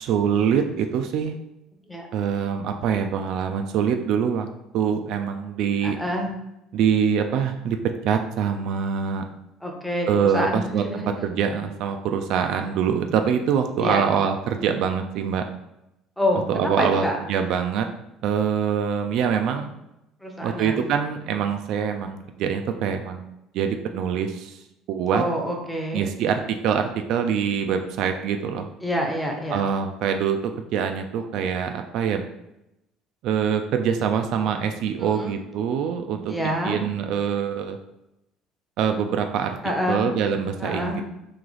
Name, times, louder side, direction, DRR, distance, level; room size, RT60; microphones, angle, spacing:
voice 1, 0.0-1.3 2.1-4.5 4.7-6.0 6.7-9.2 10.1-15.4 16.5-17.9 18.2-19.7 20.4-23.2 23.5-24.6 24.9-25.2 25.9-28.7 29.5-32.3 33.2-37.8 38.8-39.6 39.9-41.0, right 7 dB, 60° right, 6 dB, 0.3 m, -24 dB
voice 2, 5.8-6.3 9.6-11.1 13.8-14.0 16.2-17.2 20.2-20.8 25.1-26.1 28.8-29.6 35.1-35.3 36.3-36.8 39.6-40.1 40.6-41.0, equal, ahead, 1 dB, 0.6 m, -27 dB
3.1 x 2.8 x 3.8 m, 0.88 s
cardioid pair, 160°, 0 cm